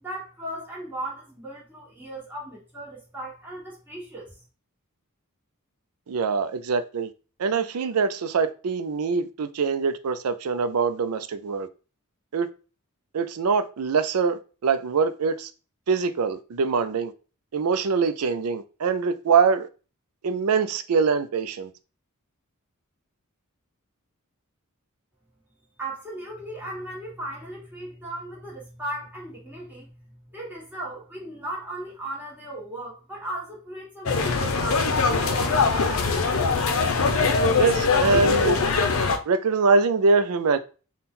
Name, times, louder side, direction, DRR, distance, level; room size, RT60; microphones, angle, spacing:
voice 1, 0.0-4.4 25.8-29.9 30.3-36.4, right 1 dB, 10° right, 1.3 m, -37 dB
voice 2, 6.1-7.1 7.4-11.7 12.3-12.5 13.1-15.5 15.9-17.1 17.5-19.7 20.2-21.7 37.6-38.6 39.3-40.6, right 5 dB, 85° right, 0.5 m, -23 dB
sound 1, 34.1-39.2, left 4 dB, 70° left, 0.6 m, -22 dB
4.2 x 2.3 x 3.7 m
head